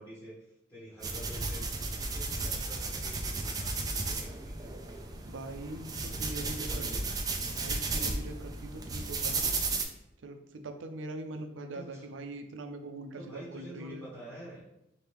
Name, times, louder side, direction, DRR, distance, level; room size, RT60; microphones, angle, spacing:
voice 1, 0.0-1.7 2.0-5.2 5.4-5.5 6.4-7.1 11.7-12.0 13.2-14.6, equal, 25° left, -9 dB, 1.2 m, -48 dB
sound 1, 1.0-9.8, right 3 dB, 20° right, 0.3 m, -34 dB
voice 2, 5.3-6.9 7.5-9.6 10.2-14.1, right 2 dB, 85° right, 7 dB, 0.5 m, -42 dB
4.5 x 2.8 x 3.3 m, 0.84 s
head